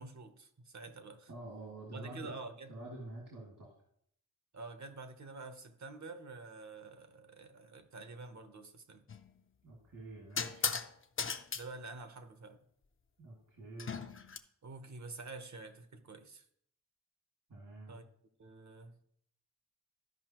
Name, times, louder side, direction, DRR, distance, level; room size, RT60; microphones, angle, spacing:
voice 1, 0.0-1.3 1.9-2.7 4.5-9.0 11.5-12.6 14.6-16.4 17.9-18.0 18.4-19.0, right 3 dB, 60° right, 8 dB, 0.9 m, -48 dB
voice 2, 1.3-2.4 2.7-3.7 9.6-10.7 13.2-14.1 17.5-18.0, right 2 dB, 75° right, -4 dB, 2.3 m, -48 dB
sound 1, 9.1-9.3 10.4-10.9 11.2-11.6 13.8-14.4, left 5 dB, 40° left, 0.5 m, -36 dB
13.5 x 5.3 x 3.0 m, 0.68 s
wide cardioid pair, 105°, 32 cm